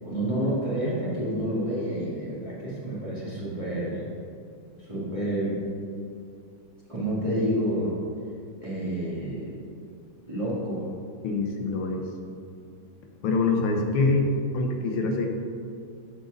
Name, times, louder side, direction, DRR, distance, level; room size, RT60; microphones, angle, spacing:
voice 1, 0.0-4.1 4.8-5.6 6.9-8.0 8.6-9.6 10.3-10.8, right 1 dB, 20° right, -8 dB, 1.4 m, -29 dB
voice 2, 11.2-12.1 13.2-14.3 14.5-15.3, left 3 dB, 90° left, 3 dB, 1.7 m, -24 dB
7.9 x 4.0 x 6.2 m, 2.4 s
omnidirectional pair, 2.3 m